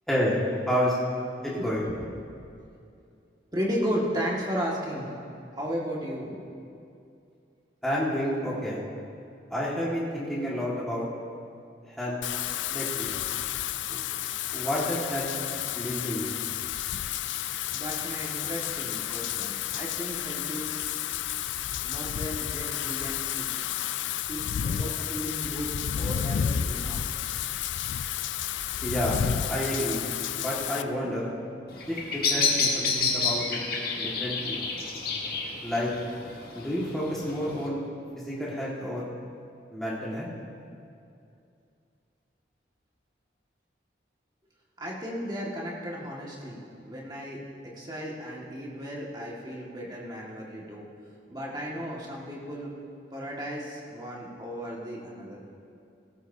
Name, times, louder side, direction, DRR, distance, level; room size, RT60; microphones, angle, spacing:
voice 1, 0.7-1.0 1.4-1.9 7.8-8.8 9.5-11.1 11.9-12.2 12.7-13.1 13.9-14.0 14.5-15.3 15.7-16.3 28.8-29.2 29.5-30.0 30.4-31.3 31.9-33.6 34.0-34.6 35.6-35.9 36.5-37.9 38.2-39.1 39.7-40.3, equal, ahead, -7 dB, 1.8 m, -30 dB
voice 2, 3.5-5.1 5.5-6.4 17.7-21.1 21.8-23.5 24.3-27.0 31.0-31.1 33.8-34.2 44.8-50.9 51.3-52.7 53.1-55.4, equal, 20° right, -4 dB, 1.9 m, -35 dB
Wind / Rain, 12.2-30.8, left 9 dB, 80° left, 0.4 m, -31 dB
Bird vocalization bird call bird song, 31.7-37.7, left 4 dB, 50° left, 1.6 m, -30 dB
17.0 x 14.0 x 2.8 m, 2.5 s
head